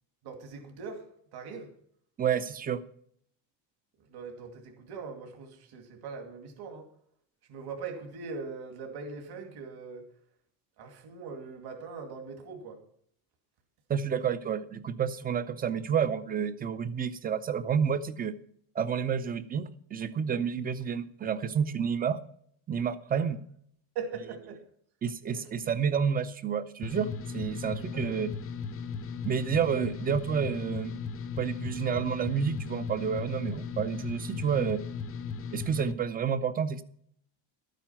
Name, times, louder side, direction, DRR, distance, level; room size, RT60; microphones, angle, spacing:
voice 1, 0.2-1.0 1.3-1.7 4.1-6.8 7.5-10.0 10.8-12.8 23.1-23.3 23.9-24.6 25.3-25.5 27.9-28.1, right 5 dB, 50° right, 3 dB, 2.4 m, -41 dB
voice 2, 2.2-2.8 13.9-18.3 18.8-22.2 22.7-23.4 25.0-28.3 29.2-31.0 31.4-34.8 35.5-36.8, right 7 dB, 20° right, 14 dB, 0.5 m, -30 dB
sound 1, 26.8-35.9, left 5 dB, 30° left, 0.5 m, -37 dB
12.5 x 9.1 x 5.8 m, 0.64 s
cardioid pair, 165°, 49 cm